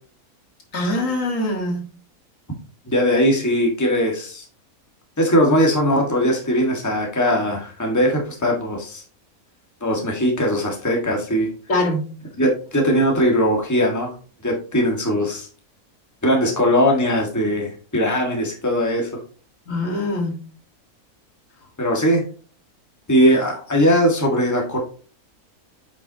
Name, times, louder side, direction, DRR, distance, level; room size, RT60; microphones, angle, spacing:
voice 1, 0.7-1.8 11.7-12.0 19.7-20.3, left 1 dB, 60° left, 1 dB, 2.2 m, -23 dB
voice 2, 2.9-4.4 5.2-9.0 9.8-11.5 12.4-14.1 14.4-15.5 16.2-19.2 21.8-22.2 23.1-24.8, equal, 10° left, 1 dB, 1.7 m, -20 dB
8.4 x 5.8 x 2.8 m, 0.38 s
omnidirectional pair, 1.6 m